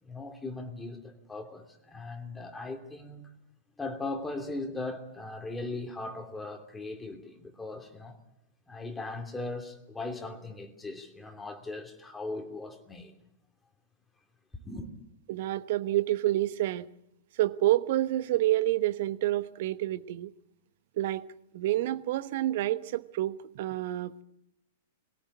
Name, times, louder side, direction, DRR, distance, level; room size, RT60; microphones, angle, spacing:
voice 1, 0.0-3.3 3.8-8.2 8.7-13.1 14.5-14.9, left 2 dB, 10° left, 2.9 m, -39 dB
voice 2, 15.3-16.9 17.3-20.3 21.0-21.2 21.5-24.2, right 15 dB, 55° right, 1.0 m, -28 dB
22.0 x 18.0 x 8.4 m
figure-of-eight pair, 105°, 0 cm